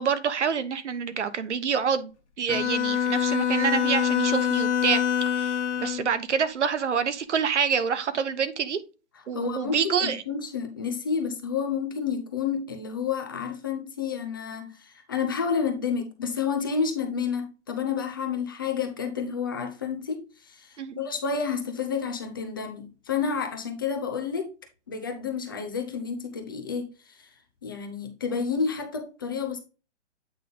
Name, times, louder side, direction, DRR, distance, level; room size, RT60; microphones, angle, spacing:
voice 1, 0.0-2.1 2.4-5.0 5.4-8.8 9.3-10.2 20.8-21.0, right 6 dB, 75° right, 1.1 m, -27 dB
Bowed string instrument, 2.5-6.1, left 8 dB, 75° left, 1.4 m, -25 dB
voice 2, 9.1-24.5 24.9-29.6, left 6 dB, 20° left, 0.5 m, -30 dB
8.4 x 3.6 x 3.8 m
hypercardioid pair, 165°, 35 cm